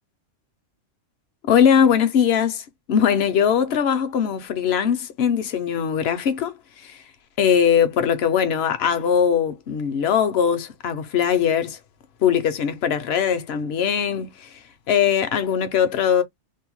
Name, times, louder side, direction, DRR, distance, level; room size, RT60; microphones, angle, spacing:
voice 1, 1.4-7.0 7.4-11.8 12.2-14.5 14.9-16.2, left 8 dB, 65° left, 0.8 m, -21 dB
2.7 x 2.1 x 2.9 m
omnidirectional pair, 1.3 m